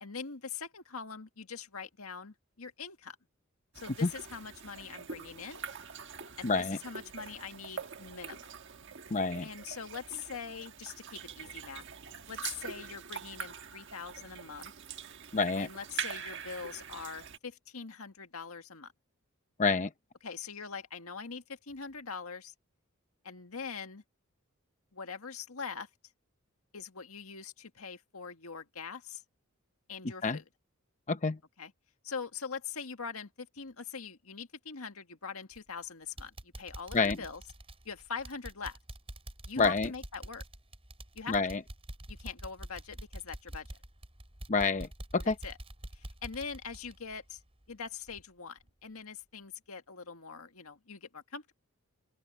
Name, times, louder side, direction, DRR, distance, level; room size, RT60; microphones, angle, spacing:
voice 1, 0.0-3.2 3.8-5.6 6.4-8.6 9.4-11.8 12.3-14.7 15.6-18.9 20.2-22.5 23.2-24.0 24.9-25.9 26.7-29.2 29.9-30.4 31.6-31.7 32.0-37.4 37.9-38.8 39.5-40.4 41.1-41.4 42.1-43.7 45.4-45.6 46.0-47.4 47.7-51.5, left 5 dB, 85° left, 1.8 m, -43 dB
sound 1, 3.7-17.4, right 6 dB, 55° right, 1.5 m, -44 dB
voice 2, 6.4-6.8 9.1-9.5 15.3-15.7 19.6-19.9 30.2-30.4 31.1-31.4 36.9-37.2 39.6-39.9 41.3-41.6 44.5-44.9 45.1-45.3, left 4 dB, 35° left, 0.7 m, -27 dB
sound 2, 35.5-35.8 36.2-47.8 48.1-48.2 48.7-48.8, right 1 dB, 25° right, 5.7 m, -46 dB
open air
head